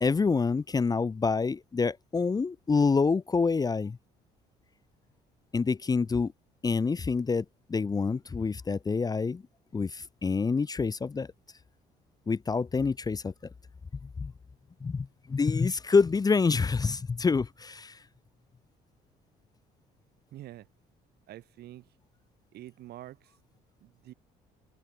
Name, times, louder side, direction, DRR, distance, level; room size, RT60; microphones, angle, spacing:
voice 1, 0.0-4.0 5.5-6.3 6.6-9.4 9.7-11.3 12.3-13.3 14.2-14.3 14.8-18.0, left 4 dB, 20° left, 0.9 m, -27 dB
voice 2, 20.3-20.7 21.3-21.9 22.5-23.3 23.8-24.1, right 14 dB, 70° right, 5.3 m, -46 dB
cardioid pair, 110°, 17 cm